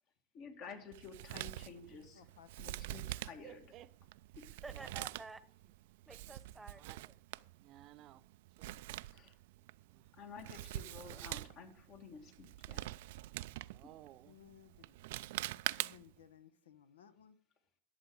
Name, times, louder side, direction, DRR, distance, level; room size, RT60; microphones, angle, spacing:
voice 1, 0.3-2.2 2.6-3.6 4.4-4.5 9.1-9.4 10.1-12.9, left 5 dB, 50° left, 2.2 m, -52 dB
Male speech man speaking, 0.9-16.2, right 17 dB, 70° right, 0.3 m, -45 dB
voice 2, 2.1-2.9 14.2-15.0 15.8-17.4, left 9 dB, 85° left, 0.8 m, -60 dB
voice 3, 3.4-3.9 4.7-4.9 6.7-7.0 7.5-8.2 8.6-8.7 9.8-10.1 13.7-14.4, right 13 dB, 50° right, 0.7 m, -56 dB
voice 4, 4.6-5.7 6.1-7.1, right 3 dB, 10° right, 1.0 m, -51 dB
11.5 x 7.5 x 4.9 m
hypercardioid pair, 90°, 0 cm